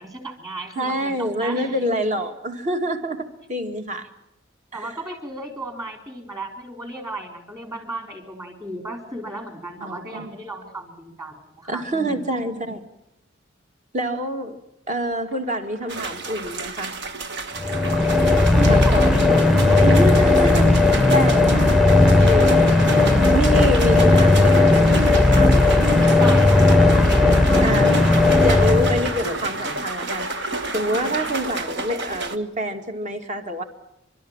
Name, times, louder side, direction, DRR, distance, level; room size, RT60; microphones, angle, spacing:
voice 1, 0.0-1.8 4.7-12.3 18.5-19.8 26.1-27.8 30.9-31.2, right 1 dB, 20° right, 5 dB, 3.9 m, -35 dB
voice 2, 0.8-4.1 4.7-4.9 9.8-10.3 11.7-12.9 13.9-14.6 14.9-17.0 18.6-19.1 19.8-20.8 21.1-21.9 22.2-22.6 23.3-25.6 27.6-28.0 28.4-30.3 30.7-33.6, equal, 40° right, 6 dB, 2.1 m, -26 dB
sound 1, 15.1-31.8, right 1 dB, 80° right, 3.4 m, -37 dB
sound 2, 15.9-32.4, right 3 dB, 60° right, 1.4 m, -32 dB
sound 3, 17.6-29.5, left 2 dB, ahead, 0.8 m, -16 dB
29.5 x 12.5 x 8.9 m, 0.85 s
head